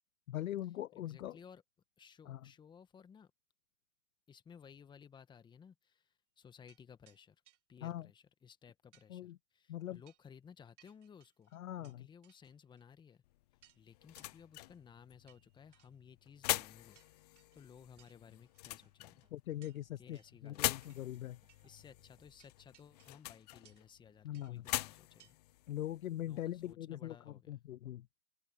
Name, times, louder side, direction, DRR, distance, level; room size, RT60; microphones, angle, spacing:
voice 1, 0.3-1.4 2.3-2.4 7.8-8.1 9.1-9.4 9.7-10.0 11.5-12.0 19.3-20.2 20.4-21.4 24.2-24.6 25.7-27.2 27.5-28.1, left 13 dB, 65° left, 0.5 m, -41 dB
voice 2, 0.9-1.6 2.0-3.3 4.3-7.4 7.7-11.5 11.8-13.2 13.7-19.2 20.0-21.0 21.6-25.4 26.2-27.6, left 7 dB, 10° left, 1.6 m, -58 dB
sound 1, 6.7-6.8 7.1-7.2 7.5-7.6 8.9-9.1 10.1-10.3 10.8-12.0 12.2-12.8 13.1-13.2 13.6-13.8 14.2-14.3 15.3-15.9 16.5-16.7 16.9-17.6 18.0-18.2 18.5-18.6 19.6-19.8 20.2-20.4 20.8-21.2 21.5-21.6 22.4-23.2 23.6-23.9 24.3-24.5 25.2-25.4 25.7-25.8, right 12 dB, 50° right, 2.7 m, -67 dB
sound 2, 13.2-26.7, left 17 dB, 25° left, 0.7 m, -44 dB
Drum kit / Drum, 18.0-22.8, right 6 dB, 10° right, 6.8 m, -76 dB
open air
hypercardioid pair, 130°, 44 cm